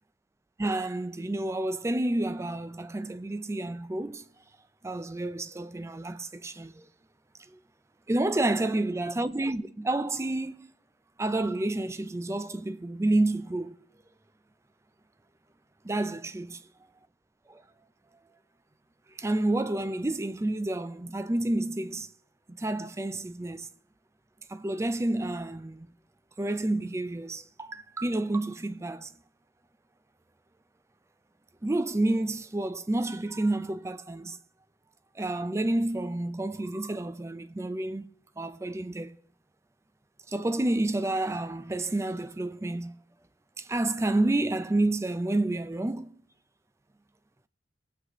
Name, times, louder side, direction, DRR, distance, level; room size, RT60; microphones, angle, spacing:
voice 1, 0.6-4.2 4.8-6.9 7.5-7.6 8.1-10.7 11.2-13.7 15.8-16.5 17.5-17.6 19.2-22.1 22.5-23.7 24.5-25.9 26.4-29.1 31.6-34.4 35.2-38.1 38.4-39.2 40.3-43.0 43.6-46.1, right 2 dB, 15° right, 0.4 m, -29 dB
20.5 x 8.0 x 3.0 m
head